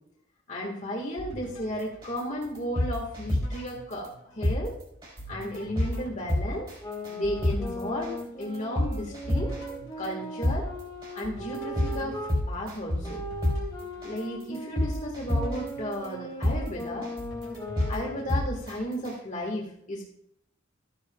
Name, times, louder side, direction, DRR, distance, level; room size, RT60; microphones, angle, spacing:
voice 1, 0.5-4.1 4.3-4.7 5.3-6.7 7.1-9.5 10.0-10.7 11.1-13.2 14.0-17.1 17.9-20.1, equal, 35° left, -1 dB, 1.5 m, -34 dB
sound 1, 1.2-2.8 3.2-4.8 5.2-8.8 9.2-10.8 11.2-14.7 15.2-16.8 17.2-19.1, right 1 dB, 80° left, 2.8 m, -45 dB
sound 2, 2.0-2.2 2.6-3.7 4.0-4.1 4.4-4.6 5.0-5.2 5.5-5.9 6.3-6.7 7.0-7.1 7.4-7.6 8.0-8.2 8.5-9.7 10.0-10.1 10.4-10.6 11.0-11.2 11.5-11.9 12.3-13.1 13.4-13.6 14.0-14.2 14.5-15.7 16.0-16.1 16.4-16.6 17.0-17.2 17.5-17.9 18.3-18.7 19.0-19.1, left 1 dB, 25° right, 3.5 m, -26 dB
sound 3, 6.8-12.4 13.0-18.5, equal, 20° left, 2.2 m, -39 dB
13.5 x 10.0 x 2.3 m, 0.73 s
head